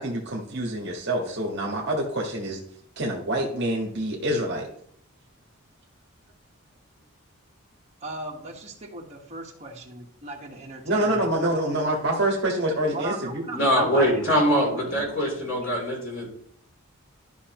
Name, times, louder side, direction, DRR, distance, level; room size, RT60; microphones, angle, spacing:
voice 1, 0.0-2.6 3.0-4.7 10.8-13.4, right 1 dB, 50° right, -1 dB, 1.6 m, -26 dB
voice 2, 8.0-11.3 11.7-11.8 12.9-15.8, right 2 dB, 30° right, -2 dB, 1.6 m, -37 dB
voice 3, 13.5-16.3, equal, 65° left, -2 dB, 3.6 m, -23 dB
12.5 x 5.8 x 3.1 m, 0.66 s
head